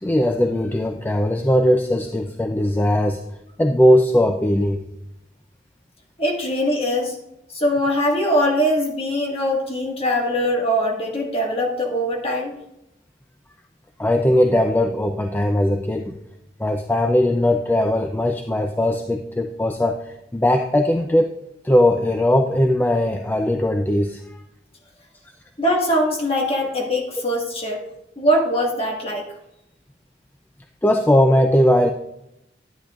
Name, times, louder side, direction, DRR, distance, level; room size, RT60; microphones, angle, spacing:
voice 1, 0.0-3.2 3.6-4.8 14.0-16.2 16.6-21.3 21.6-24.4 30.8-31.9, left 1 dB, 10° left, 5 dB, 0.3 m, -19 dB
voice 2, 6.2-7.2 7.5-12.5 25.6-27.8 28.2-29.2, equal, 35° left, 0 dB, 1.6 m, -22 dB
10.0 x 10.0 x 2.4 m, 0.84 s
head